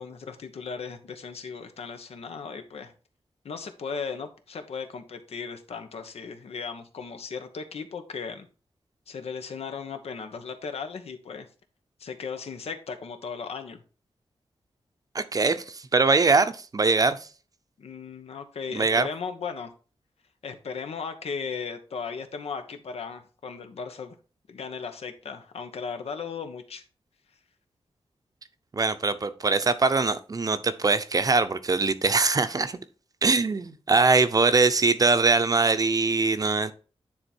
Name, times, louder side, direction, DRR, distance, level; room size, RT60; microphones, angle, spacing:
voice 1, 0.0-2.9 3.4-8.5 9.1-11.5 12.0-13.8 17.8-19.7 20.4-24.2 24.5-26.8, left 5 dB, 85° left, 1.1 m, -36 dB
voice 2, 15.1-17.3 18.7-19.1 28.7-32.8 33.2-36.7, right 3 dB, 35° right, 0.7 m, -22 dB
9.7 x 3.6 x 4.5 m
wide cardioid pair, 110°, 10 cm